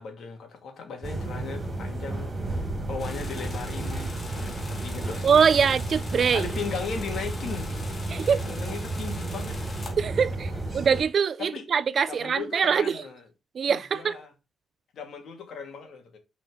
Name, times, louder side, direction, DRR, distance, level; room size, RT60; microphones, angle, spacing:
voice 1, 0.0-5.3 6.3-10.4 10.7-10.8 11.4-11.7 12.1-13.3 13.7-14.3 14.9-16.2, left 5 dB, 60° left, 2.8 m, -38 dB
sound 1, 1.0-11.0, right 2 dB, 25° right, 2.9 m, -32 dB
sound 2, 3.0-9.9, left 3 dB, 30° left, 2.5 m, -43 dB
voice 2, 5.2-6.5 8.1-8.4 10.0-13.0 13.5-14.2, right 6 dB, 50° right, 0.5 m, -23 dB
6.0 x 5.1 x 4.9 m
cardioid pair, 90°, 0 cm